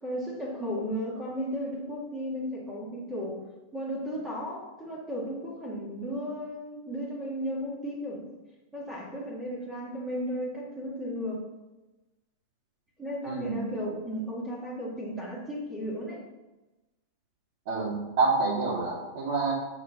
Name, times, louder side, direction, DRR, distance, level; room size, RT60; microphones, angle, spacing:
voice 1, 0.0-3.4 3.7-8.3 8.7-11.5 13.0-16.2, equal, 10° right, -5 dB, 2.1 m, -34 dB
voice 2, 13.3-13.6 17.7-19.5, right 3 dB, 50° right, -8 dB, 2.9 m, -27 dB
6.5 x 6.3 x 7.4 m, 1.1 s
supercardioid pair, 170°, 0 cm